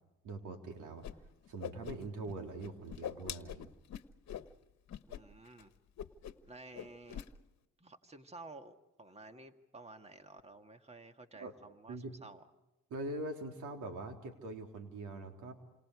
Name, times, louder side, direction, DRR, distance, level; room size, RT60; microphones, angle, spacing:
voice 1, 0.2-1.1 1.5-3.7 11.4-11.5 11.9-12.1 12.9-15.5, right 2 dB, 85° right, 4 dB, 3.6 m, -43 dB
Whoosh swoosh swish, 1.0-1.1 1.4-2.3 2.6-4.5 4.9-5.2 5.5-5.6 6.0-6.5 6.7-7.3, left 10 dB, 60° left, 1.3 m, -43 dB
voice 2, 5.1-5.7 6.5-7.2 7.8-12.4, right 3 dB, 20° right, 7 dB, 2.0 m, -53 dB
28.5 x 27.5 x 4.9 m, 0.97 s
cardioid pair, 90°, 30 cm